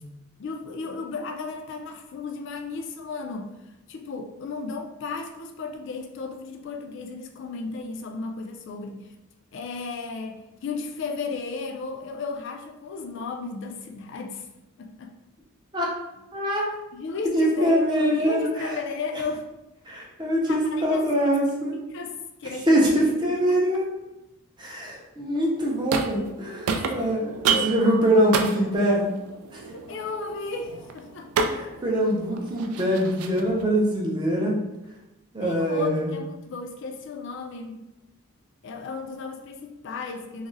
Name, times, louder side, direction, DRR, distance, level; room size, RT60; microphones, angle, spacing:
voice 1, 0.4-9.1 9.5-14.5 14.8-15.1 16.9-19.5 20.5-21.1 21.9-23.6 27.5-28.3 29.7-31.8 35.4-37.8 38.6-40.5, left 4 dB, 55° left, 4 dB, 0.3 m, -34 dB
voice 2, 16.3-16.7 17.3-18.7 19.9-21.8 22.7-23.9 24.6-29.0 29.5-29.6 31.5-34.5 35.3-36.1, equal, 20° right, -3 dB, 0.5 m, -23 dB
sound 1, 25.6-26.4 26.7-33.6, right 5 dB, 85° right, 0.3 m, -30 dB
2.4 x 2.0 x 3.8 m, 0.96 s
head